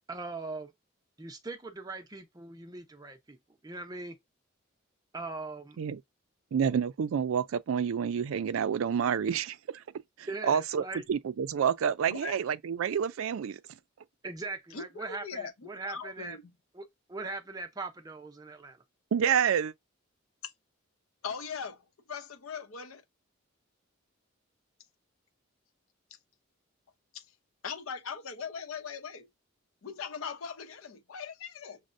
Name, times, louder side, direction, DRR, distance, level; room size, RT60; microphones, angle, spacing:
voice 1, 0.1-0.7 1.2-3.4 3.6-4.2 5.1-5.8 10.3-11.0 14.2-16.4 16.7-18.8, right 3 dB, 20° right, 0.5 m, -40 dB
voice 2, 6.5-9.8 10.2-10.8 11.1-13.6 19.1-19.7, right 7 dB, 80° right, 0.4 m, -28 dB
voice 3, 12.1-12.4 14.7-16.5 20.4-20.5 21.2-21.8 22.1-23.0 26.1-26.2 27.1-27.3 27.6-29.3 29.8-31.8, left 6 dB, 85° left, 0.7 m, -40 dB
6.2 x 2.1 x 2.5 m
head